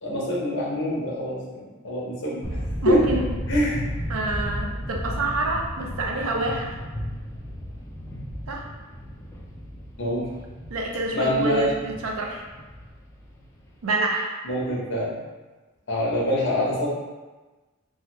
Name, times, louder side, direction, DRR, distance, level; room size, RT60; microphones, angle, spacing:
voice 1, 0.0-2.5 2.8-3.2 3.5-3.8 10.0-10.3 11.1-11.7 14.4-15.2 15.9-16.9, equal, 60° left, -5 dB, 0.9 m, -25 dB
sound 1, 2.4-13.9, equal, 15° left, 0.3 m, -34 dB
voice 2, 2.8-3.3 4.1-6.8 8.5-8.7 10.7-12.4 13.8-14.3, right 2 dB, 70° right, 0 dB, 0.5 m, -27 dB
3.3 x 2.1 x 2.9 m, 1.2 s
head